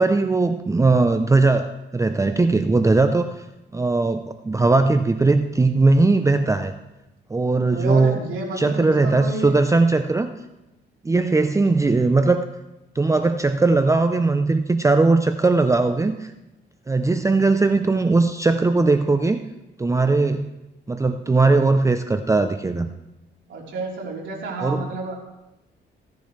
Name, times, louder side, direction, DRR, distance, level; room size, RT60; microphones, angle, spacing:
voice 1, 0.0-3.3 3.7-6.7 7.3-8.2 8.6-10.3 11.0-12.5 12.9-16.3 16.9-19.4 19.8-20.5 20.9-22.9 24.6-24.9, right 3 dB, 15° right, 8 dB, 0.5 m, -19 dB
voice 2, 7.7-9.5 11.4-11.5 23.5-25.2, right 3 dB, 70° right, -3 dB, 3.8 m, -30 dB
16.5 x 10.5 x 3.2 m, 0.97 s
cardioid pair, 90°, 20 cm